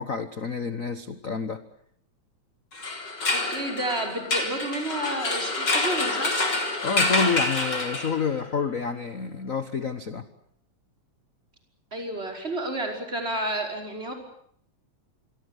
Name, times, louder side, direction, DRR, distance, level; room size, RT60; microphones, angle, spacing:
voice 1, 0.0-1.6 6.8-10.3, left 5 dB, 55° left, 10 dB, 0.8 m, -28 dB
sound 1, 2.7-8.4, left 2 dB, 35° left, 4.4 m, -27 dB
voice 2, 3.3-6.3 11.9-14.1, right 1 dB, 20° right, 3 dB, 5.6 m, -31 dB
27.5 x 23.5 x 8.1 m, 0.67 s
omnidirectional pair, 3.3 m